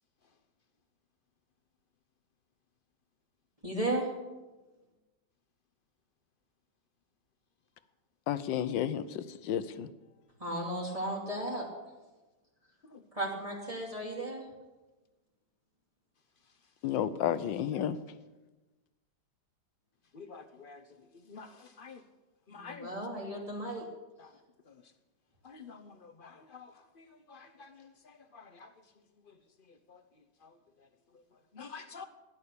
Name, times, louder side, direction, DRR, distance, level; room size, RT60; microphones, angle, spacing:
voice 1, 3.6-4.2 10.4-11.7 13.1-14.5 17.9-18.0 22.5-23.9, right 1 dB, 20° right, 2.9 m, -35 dB
voice 2, 8.3-9.9 16.8-18.0, left 10 dB, 85° left, 1.5 m, -31 dB
voice 3, 20.1-20.8 21.3-22.0 22.5-22.9 25.4-28.7 29.9-30.0 30.4-30.5 31.5-32.1, left 5 dB, 40° left, 0.8 m, -49 dB
16.0 x 11.0 x 6.8 m
omnidirectional pair, 2.0 m